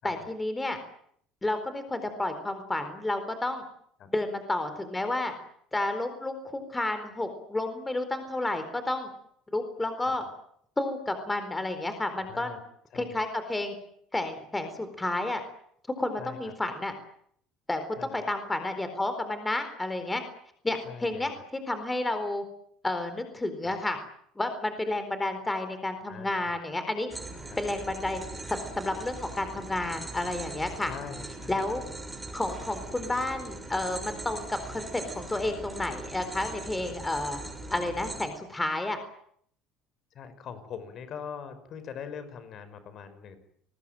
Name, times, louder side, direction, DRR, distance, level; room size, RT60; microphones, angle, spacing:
voice 1, 0.0-0.8 1.4-3.6 4.1-5.3 5.7-9.1 9.5-10.2 10.8-12.6 12.9-13.8 14.1-15.4 16.0-16.9 17.7-20.2 20.6-22.4 22.8-24.0 24.4-27.1 27.6-28.2 28.5-30.9 31.5-31.8 32.3-37.4 37.7-39.0, left 2 dB, 10° left, 9 dB, 4.2 m, -31 dB
voice 2, 12.3-12.6 12.9-13.2 16.2-16.5 18.0-18.2 20.9-21.3 23.6-23.7 26.0-26.5 27.5-27.6 30.8-31.6 40.1-43.4, left 7 dB, 50° left, 12 dB, 5.6 m, -42 dB
sound 1, 27.1-38.3, right 2 dB, 10° right, 6.6 m, -41 dB
29.5 x 20.5 x 9.1 m, 0.68 s
cardioid pair, 125°, 0 cm